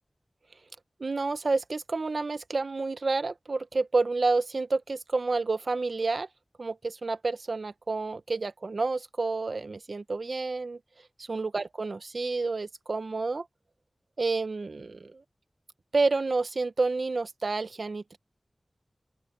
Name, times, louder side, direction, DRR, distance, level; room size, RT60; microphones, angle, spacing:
voice 1, 1.0-6.3 6.6-10.8 11.2-13.4 14.2-15.2 15.9-18.2, right 3 dB, 75° right, 1.1 m, -29 dB
open air
cardioid pair, 40°, 0 cm